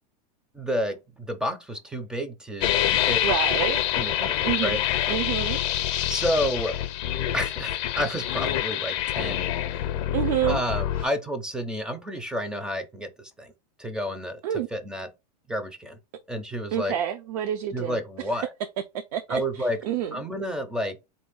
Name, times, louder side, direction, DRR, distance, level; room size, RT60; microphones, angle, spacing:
voice 1, 0.5-3.2 3.9-4.8 6.1-6.8 7.3-9.5 10.5-13.5 13.8-14.4 14.7-15.1 15.5-16.0 16.3-17.0 17.7-18.5 19.3-19.8 20.1-21.0, equal, 5° right, 0.4 m, -30 dB
sound 1, 2.6-11.0, left 12 dB, 50° left, 0.6 m, -26 dB
voice 2, 3.2-3.8 4.4-4.8 5.1-5.6 10.1-10.6 11.0-11.1 14.4-14.7 16.7-18.3 19.1-20.2, right 10 dB, 65° right, 0.5 m, -28 dB
3.9 x 2.6 x 3.6 m
supercardioid pair, 150°, 21 cm